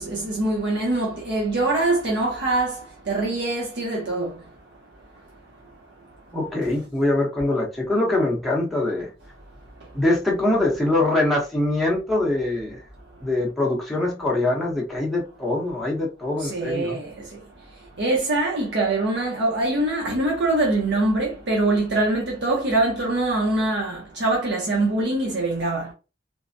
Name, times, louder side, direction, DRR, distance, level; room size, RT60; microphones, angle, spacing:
voice 1, 0.0-4.3 16.4-17.1 18.0-25.9, right 2 dB, 70° right, 0.8 m, -23 dB
voice 2, 6.3-9.1 9.9-12.8 13.2-17.0, left 2 dB, ahead, 0.8 m, -23 dB
3.2 x 2.1 x 2.6 m
head